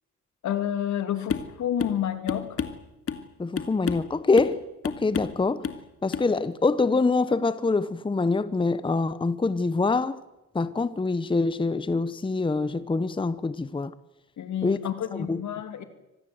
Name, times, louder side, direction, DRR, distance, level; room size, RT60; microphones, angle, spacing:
voice 1, 0.4-2.6 14.4-15.8, left 10 dB, 70° left, 2.8 m, -29 dB
sound 1, 1.3-1.5 1.8-2.0 2.3-3.3 3.6-4.1 4.4-4.6 4.8-5.4 5.6-5.8 6.1-6.3, left 7 dB, 50° left, 2.3 m, -31 dB
voice 2, 3.4-5.7 6.0-10.2 10.5-13.9 14.6-14.8 15.1-15.4, left 3 dB, 15° left, 0.9 m, -25 dB
25.5 x 19.0 x 8.0 m
cardioid pair, 90°, 30 cm